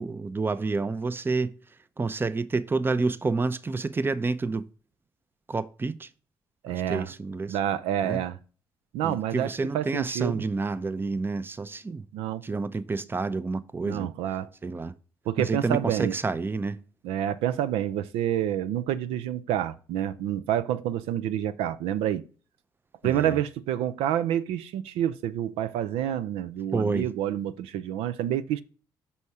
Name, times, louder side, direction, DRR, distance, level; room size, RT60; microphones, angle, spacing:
voice 1, 0.0-1.5 2.0-4.6 5.5-6.1 6.7-7.6 8.0-8.2 9.0-12.0 12.4-14.1 14.6-14.9 15.4-16.8 23.0-23.4 26.7-27.1, right 3 dB, 20° right, 0.6 m, -29 dB
voice 2, 6.6-7.1 7.5-8.4 8.9-10.4 12.1-12.4 13.8-14.5 15.3-16.2 17.0-22.2 23.0-28.6, right 11 dB, 85° right, 0.4 m, -28 dB
5.6 x 4.1 x 4.8 m
supercardioid pair, 65°, 10 cm